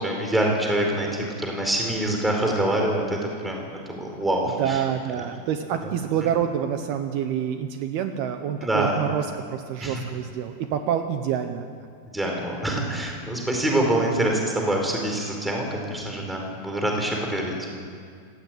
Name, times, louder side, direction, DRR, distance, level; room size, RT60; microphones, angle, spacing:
voice 1, 0.0-3.2 3.4-4.8 8.6-9.0 9.8-10.0 12.1-17.7, right 1 dB, ahead, 0 dB, 4.1 m, -25 dB
voice 2, 4.6-11.7, right 9 dB, 75° right, 6 dB, 2.8 m, -27 dB
28.5 x 15.5 x 9.4 m, 2.2 s
omnidirectional pair, 4.8 m